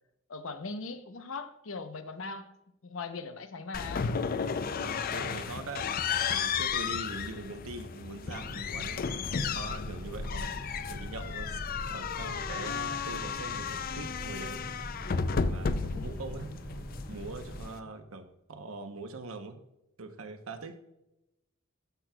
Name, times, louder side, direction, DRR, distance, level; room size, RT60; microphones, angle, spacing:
voice 1, 0.3-2.5 2.8-4.1, left 4 dB, 70° left, 0.8 m, -40 dB
sound 1, 3.7-17.8, left 6 dB, 45° left, 0.4 m, -34 dB
voice 2, 4.7-9.1 9.5-14.6 15.5-19.6 20.0-20.8, right 3 dB, 90° right, 0.9 m, -42 dB
Boat Water vehicle, 8.2-17.6, equal, 90° left, 2.8 m, -43 dB
12.5 x 6.0 x 2.3 m
head